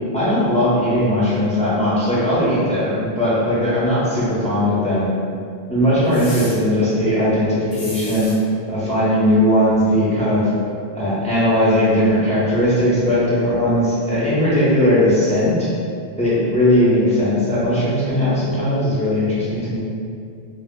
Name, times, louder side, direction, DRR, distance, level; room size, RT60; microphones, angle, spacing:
voice 1, 0.1-5.1 5.7-8.3 8.7-10.4 10.9-15.7 16.2-19.8, left 1 dB, 10° left, -10 dB, 0.5 m, -18 dB
sound 1, 6.1-6.6 7.7-8.4, left 2 dB, 80° left, 0.9 m, -34 dB
2.1 x 2.0 x 3.5 m, 2.3 s
omnidirectional pair, 1.1 m